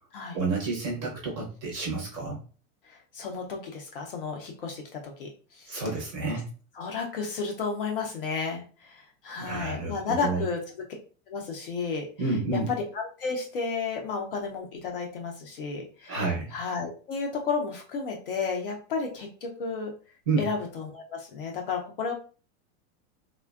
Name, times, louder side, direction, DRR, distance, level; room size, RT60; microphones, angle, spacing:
voice 1, 0.3-2.4 5.7-6.5 9.4-10.4 12.2-12.7 16.1-16.5 20.3-20.5, right 3 dB, 25° right, -3 dB, 0.5 m, -29 dB
voice 2, 2.8-5.8 6.3-6.4 6.8-10.7 11.3-12.1 12.5-19.9 20.4-22.1, left 5 dB, 45° left, 1 dB, 0.4 m, -32 dB
3.3 x 2.1 x 2.3 m, 0.38 s
supercardioid pair, 180°, 42 cm